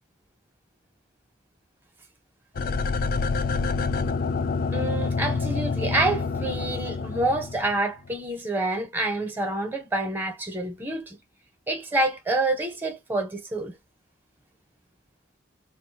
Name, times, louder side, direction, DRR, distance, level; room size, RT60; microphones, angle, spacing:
sound 1, 2.5-7.8 8.1-8.2, left 4 dB, 50° left, 0.4 m, -27 dB
voice 1, 4.7-11.2 11.7-13.7, right 2 dB, 10° right, 0.8 m, -27 dB
2.6 x 2.3 x 4.1 m
head